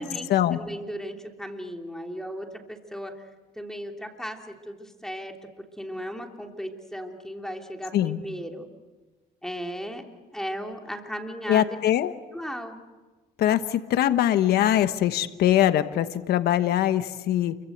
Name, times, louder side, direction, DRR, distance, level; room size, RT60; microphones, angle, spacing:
voice 1, 0.0-3.3 3.5-5.3 5.8-8.7 9.4-10.0 10.3-11.8 12.3-12.8, equal, 5° left, 3 dB, 3.0 m, -36 dB
voice 2, 11.5-12.1 13.4-17.6, left 12 dB, 70° left, 10 dB, 1.2 m, -22 dB
29.0 x 23.5 x 8.1 m, 1.3 s
cardioid pair, 110°, 17 cm